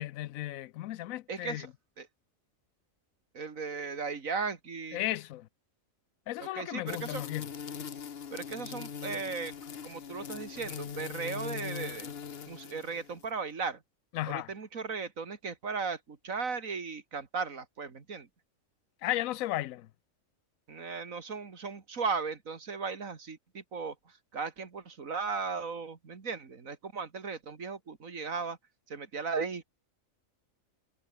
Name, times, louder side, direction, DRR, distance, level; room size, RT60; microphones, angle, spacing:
voice 1, 0.0-1.7 4.9-5.5 6.3-7.5 14.1-14.5 19.0-19.9, left 15 dB, 90° left, 1.0 m, -34 dB
voice 2, 1.3-1.7 2.0-2.1 3.3-5.0 6.4-7.2 8.3-9.5 9.8-12.1 12.5-13.8 14.3-18.3 20.7-28.6 28.9-29.6, right 5 dB, 80° right, 2.6 m, -36 dB
sound 1, 6.9-13.2, left 7 dB, 50° left, 1.2 m, -41 dB
omnidirectional pair, 1.4 m